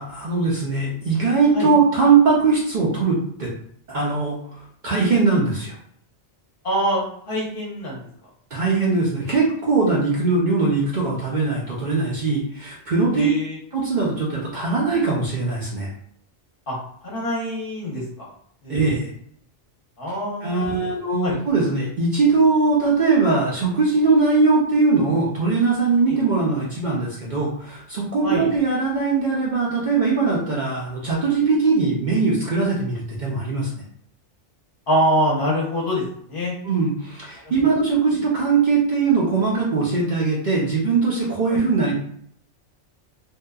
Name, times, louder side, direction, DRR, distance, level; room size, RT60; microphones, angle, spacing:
voice 1, 0.0-3.5 3.9-5.7 8.5-13.3 13.7-15.9 18.7-19.1 20.4-33.8 36.6-41.9, right 4 dB, 55° right, -5 dB, 0.6 m, -21 dB
voice 2, 6.6-8.0 13.1-13.6 16.7-16.8 17.0-18.3 18.6-18.9 20.0-20.9 21.2-21.4 28.2-28.5 34.9-36.0 36.3-36.5 41.5-41.6, equal, 55° left, -4 dB, 1.0 m, -24 dB
2.7 x 2.2 x 2.2 m, 0.66 s
omnidirectional pair, 1.2 m